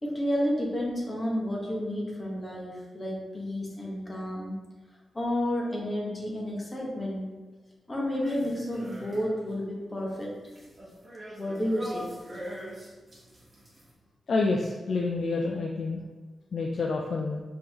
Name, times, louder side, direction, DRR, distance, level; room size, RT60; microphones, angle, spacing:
voice 1, 0.0-4.5 5.1-7.3 7.9-10.3 11.3-12.1, equal, 15° left, -3 dB, 1.0 m, -31 dB
sound 1, 8.2-9.5 9.9-13.9, equal, 25° right, 1.1 m, -42 dB
voice 2, 14.3-16.0 16.5-17.4, left 3 dB, 55° left, 0 dB, 0.4 m, -28 dB
5.1 x 3.6 x 2.9 m, 1.3 s
wide cardioid pair, 155°, 0 cm